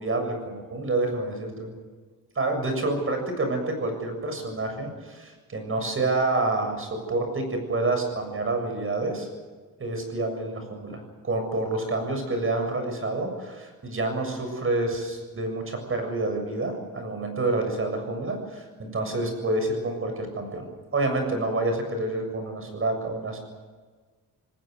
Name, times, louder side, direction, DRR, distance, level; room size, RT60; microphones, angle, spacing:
voice 1, 0.0-1.7 2.4-9.3 9.8-20.7 20.9-23.4, right 2 dB, 35° right, 5 dB, 7.2 m, -28 dB
28.0 x 19.5 x 6.7 m, 1.4 s
wide cardioid pair, 145°, 35 cm